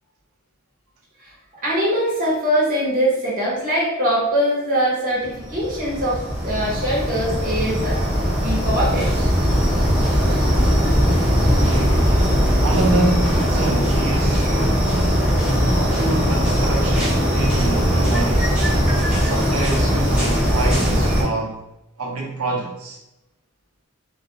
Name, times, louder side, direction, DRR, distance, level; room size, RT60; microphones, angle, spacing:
voice 1, 1.6-8.0 8.4-9.3, equal, 40° right, 0.8 m, -22 dB
sound 1, 5.4-21.2, equal, 5° right, 0.8 m, -19 dB
voice 2, 11.6-12.3 12.6-14.5 15.7-18.6 19.2-21.7 22.0-23.0, right 2 dB, 80° right, 0.6 m, -26 dB
2.3 x 2.2 x 2.8 m
head